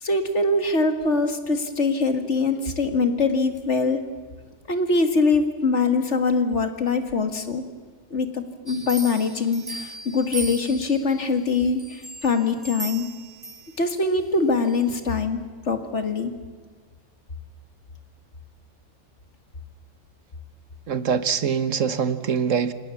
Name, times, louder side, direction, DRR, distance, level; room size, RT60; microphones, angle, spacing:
voice 1, 0.0-4.0 4.7-7.6 8.1-13.1 13.8-15.4 15.7-16.3, left 3 dB, 65° left, 2.3 m, -23 dB
sound 1, 8.7-11.2 11.8-14.1 14.6-14.8, right 2 dB, 20° right, 1.8 m, -37 dB
voice 2, 20.9-22.7, right 6 dB, 80° right, 1.6 m, -23 dB
28.5 x 25.5 x 7.2 m
omnidirectional pair, 1.3 m